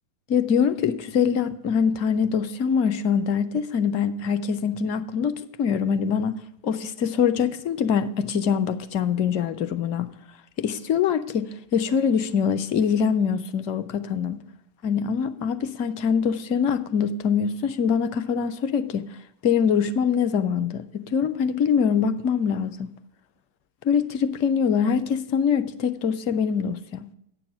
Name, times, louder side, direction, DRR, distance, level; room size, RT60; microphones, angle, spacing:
voice 1, 0.3-10.1 10.6-14.4 14.8-19.0 19.4-22.9 23.8-27.1, left 7 dB, 40° left, 0.6 m, -24 dB
9.5 x 6.9 x 4.9 m
figure-of-eight pair, 90°, 0 cm